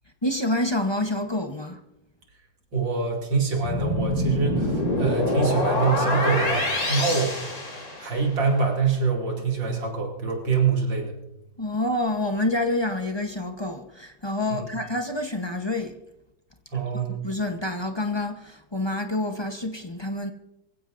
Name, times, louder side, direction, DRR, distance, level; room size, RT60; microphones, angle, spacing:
voice 1, 0.2-1.8 11.6-15.9 16.7-20.3, left 1 dB, 25° left, 0.5 m, -28 dB
voice 2, 2.7-7.4 7.7-11.2 16.7-17.2, right 5 dB, 85° right, 3.3 m, -25 dB
sound 1, 3.6-8.4, left 1 dB, 75° left, 4.1 m, -26 dB
24.0 x 15.5 x 2.6 m
omnidirectional pair, 2.0 m